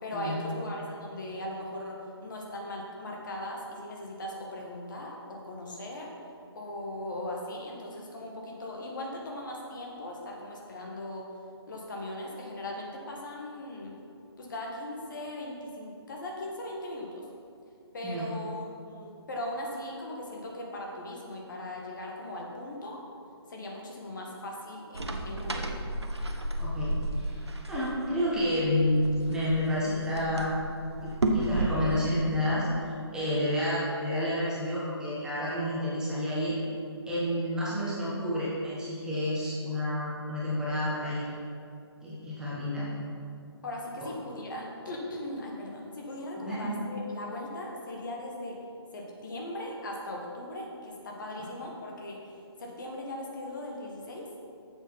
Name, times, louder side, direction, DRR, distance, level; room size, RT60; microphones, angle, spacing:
voice 1, 0.0-6.1 6.6-11.3 11.7-13.9 14.4-17.2 17.9-23.0 23.5-25.7 43.6-48.6 48.9-52.2 52.6-54.3, left 1 dB, 45° left, -1 dB, 1.8 m, -39 dB
sound 1, 24.9-31.9, right 1 dB, 75° right, 1.0 m, -33 dB
voice 2, 26.6-27.4 27.7-30.6 31.0-32.7 33.1-36.6 37.1-41.3 42.0-42.9 46.4-46.7, left 1 dB, 5° right, -9 dB, 1.3 m, -29 dB
7.3 x 7.2 x 5.8 m, 2.4 s
figure-of-eight pair, 140°, 14 cm